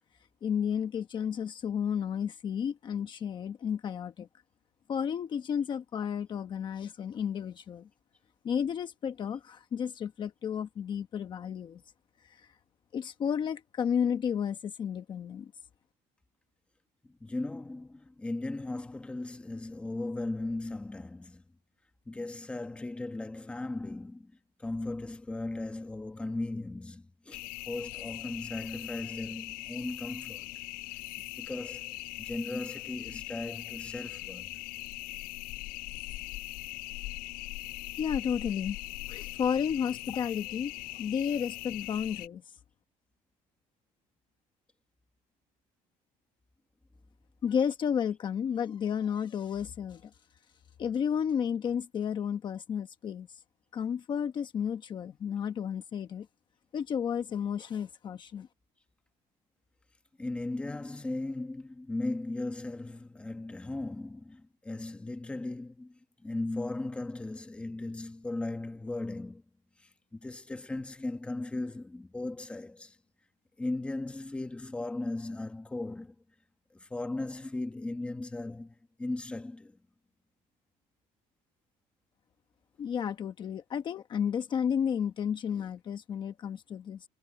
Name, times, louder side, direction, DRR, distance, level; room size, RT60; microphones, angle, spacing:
voice 1, 0.4-4.3 4.9-7.9 8.4-11.8 12.3-12.4 12.9-15.5 38.0-38.8 39.1-42.4 47.4-50.0 50.8-53.3 53.7-56.3 56.7-58.5 82.8-87.0, left 8 dB, 30° left, 1.1 m, -32 dB
voice 2, 17.2-21.4 22.1-24.3 24.6-30.5 31.4-34.5 60.2-65.9 66.2-69.4 70.1-72.9 73.6-76.1 76.7-79.7, left 2 dB, 10° left, 1.3 m, -37 dB
sound 1, 27.3-42.3, left 21 dB, 85° left, 5.7 m, -41 dB
cardioid pair, 180°, 15 cm